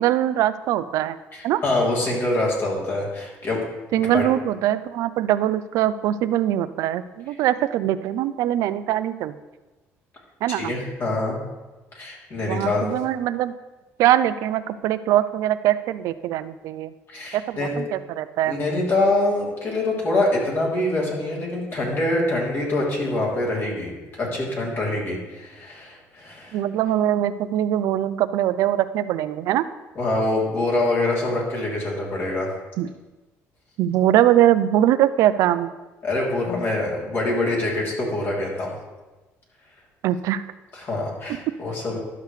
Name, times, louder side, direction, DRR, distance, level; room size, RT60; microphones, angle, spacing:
voice 1, 0.0-1.2 1.4-1.6 3.9-9.3 10.4-10.7 12.5-13.5 14.0-16.9 17.3-18.5 26.5-29.6 32.8-32.9 33.8-35.7 40.0-40.4, right 12 dB, 75° right, 13 dB, 0.4 m, -22 dB
voice 2, 1.3-3.6 3.9-4.2 10.5-11.4 11.9-12.9 17.1-17.7 18.5-26.6 29.9-32.5 36.0-38.7 40.7-42.0, left 2 dB, 45° left, -3 dB, 3.0 m, -25 dB
11.5 x 6.6 x 3.2 m, 1.2 s
cardioid pair, 100°, 6 cm